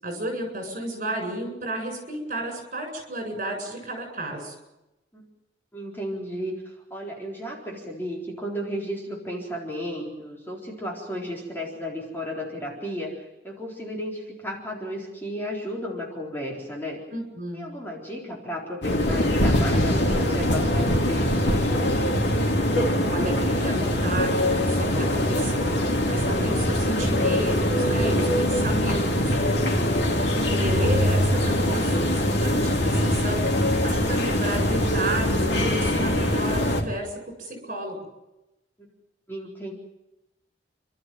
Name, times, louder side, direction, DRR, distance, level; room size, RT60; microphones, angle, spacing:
voice 1, 0.0-4.5 17.1-17.7 23.1-25.6 26.1-29.8 30.6-33.4 33.8-38.0, right 1 dB, 45° right, 4 dB, 7.8 m, -32 dB
voice 2, 5.7-17.0 17.5-22.1 38.8-38.9 39.3-39.7, equal, 10° left, -2 dB, 4.1 m, -34 dB
sound 1, 18.8-36.8, left 1 dB, 75° left, 3.5 m, -23 dB
29.5 x 13.0 x 9.3 m, 0.96 s
head